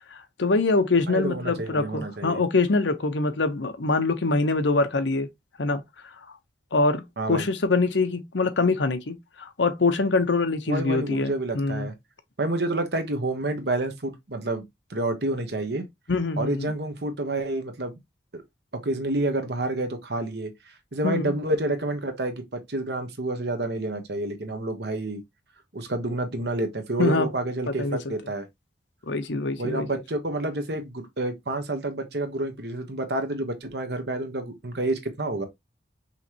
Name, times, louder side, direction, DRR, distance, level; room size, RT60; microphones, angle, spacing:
voice 1, 0.1-5.3 5.6-6.1 6.7-11.9 16.1-16.8 21.0-21.3 27.0-27.3 27.8-28.0 29.0-29.9, left 3 dB, 85° left, 0.8 m, -24 dB
voice 2, 1.1-2.4 7.2-7.4 10.7-11.9 12.4-14.6 14.9-15.8 16.4-18.0 18.3-18.4 18.8-20.5 20.9-25.2 25.7-28.4 29.6-35.5, right 2 dB, 60° right, 1.1 m, -29 dB
5.6 x 3.2 x 2.8 m
head